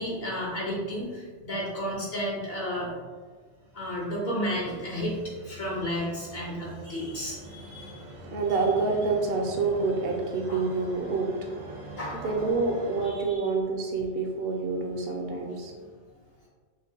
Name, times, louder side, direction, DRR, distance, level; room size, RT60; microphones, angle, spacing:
voice 1, 0.0-3.0 3.7-5.2 5.4-8.0 10.5-10.6 11.9-12.5 13.0-13.4, equal, 60° left, -4 dB, 1.1 m, -32 dB
sound 1, 3.4-13.1, right 1 dB, 90° right, 1.1 m, -44 dB
voice 2, 8.0-11.3 12.2-15.7, right 4 dB, 60° right, 1 dB, 0.8 m, -27 dB
6.1 x 2.3 x 2.7 m, 1.5 s
omnidirectional pair, 1.2 m